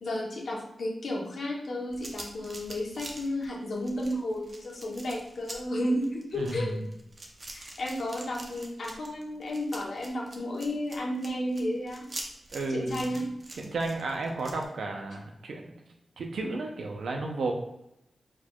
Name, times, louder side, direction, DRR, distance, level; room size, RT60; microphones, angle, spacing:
voice 1, 0.0-6.7 7.5-12.1 12.7-13.2, left 1 dB, 70° left, -2 dB, 1.0 m, -32 dB
sound 1, 1.9-14.6, right 1 dB, 40° right, 0.7 m, -44 dB
voice 2, 12.5-13.2 13.6-15.7 16.2-17.5, right 3 dB, 90° right, 2 dB, 0.7 m, -33 dB
4.5 x 4.4 x 2.4 m, 0.84 s
wide cardioid pair, 105°, 0 cm